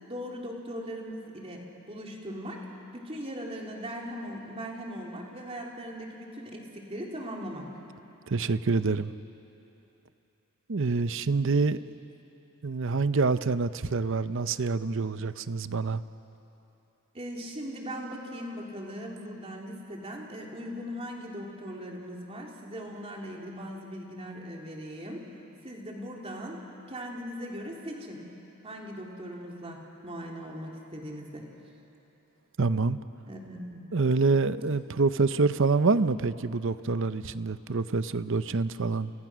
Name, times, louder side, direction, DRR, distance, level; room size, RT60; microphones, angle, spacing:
voice 1, 0.1-2.6 2.9-7.8 17.1-25.2 25.6-26.6 26.9-28.2 28.6-31.5 33.3-33.8, equal, 25° right, -1 dB, 3.3 m, -39 dB
voice 2, 8.3-9.1 10.7-11.8 12.6-16.0 32.6-33.0 33.9-39.1, right 4 dB, 60° right, 13 dB, 0.7 m, -26 dB
29.5 x 29.0 x 6.2 m, 3.0 s
head